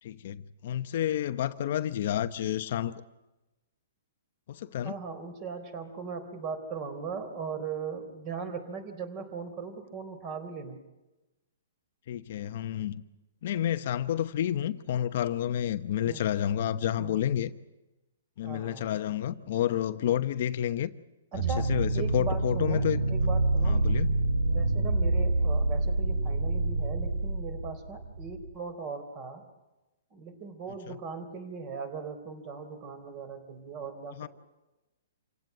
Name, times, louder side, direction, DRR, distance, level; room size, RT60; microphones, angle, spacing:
voice 1, 0.0-2.9 4.5-4.9 12.1-13.0 13.4-17.5 18.4-20.9 21.3-23.0 23.6-24.1 30.9-31.0 34.1-34.3, left 11 dB, 50° left, 0.9 m, -30 dB
voice 2, 4.8-10.8 16.1-16.3 17.0-17.3 18.4-19.0 21.3-23.8 24.5-29.4 30.1-34.3, right 5 dB, 30° right, 3.9 m, -39 dB
sound 1, 21.3-28.5, right 2 dB, 85° right, 2.8 m, -27 dB
27.0 x 17.0 x 9.5 m
hypercardioid pair, 160°, 0 cm